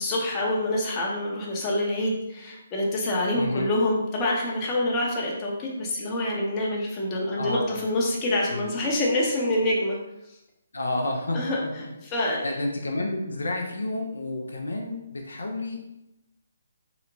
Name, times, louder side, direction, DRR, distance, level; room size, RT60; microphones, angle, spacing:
voice 1, 0.0-10.0 11.3-11.6 12.0-12.5, left 1 dB, 25° left, -3 dB, 0.6 m, -26 dB
voice 2, 3.3-3.7 7.4-7.8 8.5-8.8 10.7-15.8, left 2 dB, 80° left, 1 dB, 0.4 m, -31 dB
2.8 x 2.1 x 2.6 m, 0.90 s
figure-of-eight pair, 145°, 0 cm